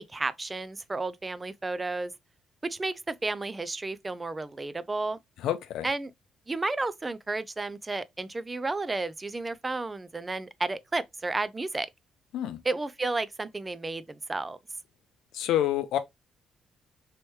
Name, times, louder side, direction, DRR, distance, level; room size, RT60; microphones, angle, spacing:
voice 1, 0.0-2.1 2.6-5.2 5.8-6.1 6.5-11.9 12.7-14.6, right 3 dB, 20° right, 0.4 m, -32 dB
voice 2, 5.4-5.9 12.3-12.6 15.3-16.0, left 12 dB, 85° left, 0.5 m, -28 dB
3.2 x 2.9 x 3.1 m
cardioid pair, 90°, 0 cm